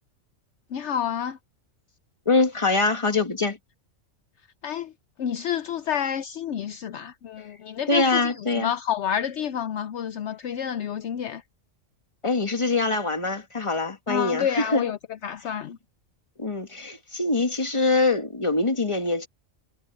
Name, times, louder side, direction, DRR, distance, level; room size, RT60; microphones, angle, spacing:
voice 1, 0.7-1.4 4.6-4.9 5.2-11.4 14.1-15.0 15.2-15.8, left 9 dB, 70° left, 0.9 m, -29 dB
voice 2, 2.3-3.6 7.9-8.7 12.2-14.9 16.4-19.3, left 3 dB, 25° left, 1.8 m, -24 dB
omnidirectional pair, 1.3 m